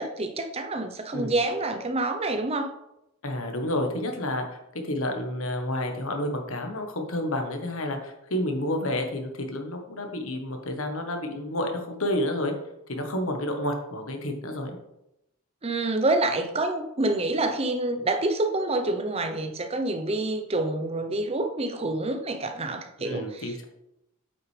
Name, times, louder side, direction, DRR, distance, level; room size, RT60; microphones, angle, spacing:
voice 1, 0.0-2.7 15.6-23.5, right 2 dB, 25° right, 7 dB, 0.7 m, -27 dB
voice 2, 3.2-4.6 4.8-12.5 12.9-14.7 23.0-23.7, left 1 dB, 65° left, 4 dB, 1.2 m, -30 dB
8.7 x 5.9 x 3.3 m, 0.86 s
head